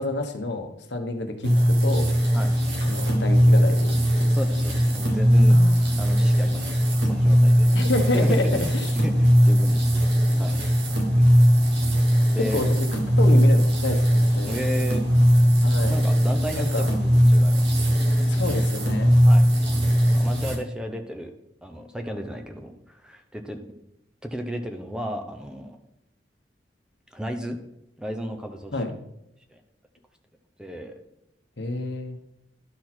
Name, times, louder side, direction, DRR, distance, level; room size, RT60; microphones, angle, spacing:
voice 1, 0.0-2.1 2.8-4.3 5.5-5.9 7.7-8.5 8.7-8.9 12.5-14.6 15.6-16.0 16.5-16.9 18.3-19.2 28.7-29.0 31.6-32.2, left 2 dB, 75° left, 6 dB, 1.0 m, -29 dB
sound 1, 1.4-20.6, equal, 65° right, 1.4 m, -19 dB
voice 2, 4.3-5.6 6.0-7.7 8.1-8.6 8.9-11.3 12.3-12.6 14.5-15.1 15.9-18.4 19.0-21.3 21.6-23.6 24.2-25.8 27.1-27.6 28.0-28.8 29.5-29.6 30.6-30.9, equal, 5° right, 4 dB, 0.6 m, -34 dB
12.0 x 4.2 x 4.3 m, 0.81 s
head